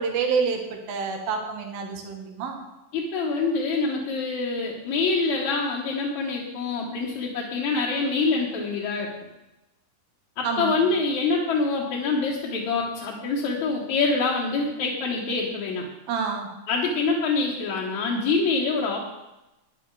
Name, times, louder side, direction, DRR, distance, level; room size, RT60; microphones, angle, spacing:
voice 1, 0.0-2.6 10.4-10.8 16.1-16.5, right 5 dB, 85° right, 3 dB, 3.3 m, -28 dB
voice 2, 2.9-9.1 10.4-15.9 16.7-19.0, left 4 dB, 60° left, -4 dB, 2.5 m, -25 dB
11.5 x 10.5 x 4.8 m, 0.97 s
omnidirectional pair, 4.1 m